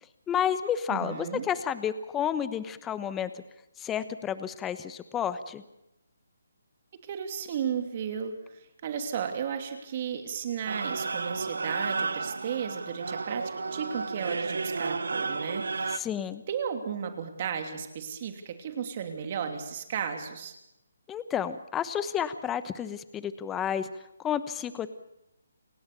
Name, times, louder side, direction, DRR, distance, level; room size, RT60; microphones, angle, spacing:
voice 1, 0.3-3.3 3.8-5.6 15.9-16.4 21.1-23.9 24.2-24.9, left 9 dB, 10° left, 13 dB, 1.0 m, -31 dB
voice 2, 0.9-1.5 7.0-16.0 16.5-20.6, right 7 dB, 40° right, 6 dB, 2.9 m, -34 dB
sound 1, 10.7-16.0, right 4 dB, 75° right, 1.2 m, -32 dB
28.5 x 17.0 x 6.9 m, 0.85 s
hypercardioid pair, 160°, 0 cm